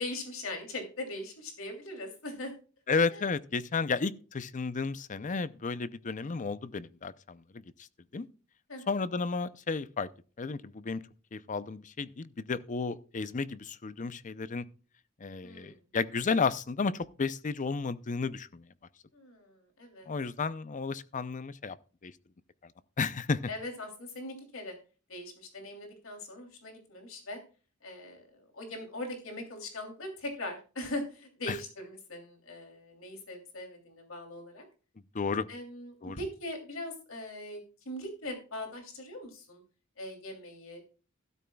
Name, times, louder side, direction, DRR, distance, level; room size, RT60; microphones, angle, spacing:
voice 1, 0.0-2.5 3.1-3.3 8.7-8.8 15.4-15.8 19.1-20.1 23.5-24.7 25.1-27.4 27.8-34.6 35.5-39.6 40.0-40.9, left 1 dB, 75° left, 3.0 m, -41 dB
voice 2, 2.9-7.6 8.1-8.3 8.9-10.1 10.4-11.0 11.3-14.6 15.2-18.6 20.1-21.8 22.0-22.1 23.0-23.4 31.5-31.6 35.1-35.5 36.0-36.2, left 4 dB, 40° left, 0.5 m, -32 dB
13.0 x 12.5 x 2.3 m
head